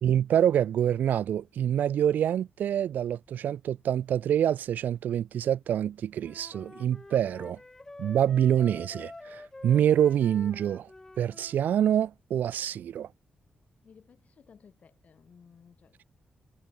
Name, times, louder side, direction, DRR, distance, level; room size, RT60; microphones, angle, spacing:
voice 1, 0.0-7.6 8.0-10.9 11.2-13.1, right 10 dB, 85° right, 0.6 m, -26 dB
Wind instrument woodwind instrument, 6.2-11.6, left 2 dB, 15° left, 2.1 m, -47 dB
voice 2, 13.8-16.1, left 6 dB, 55° left, 6.3 m, -57 dB
cardioid pair, 110°, 3 cm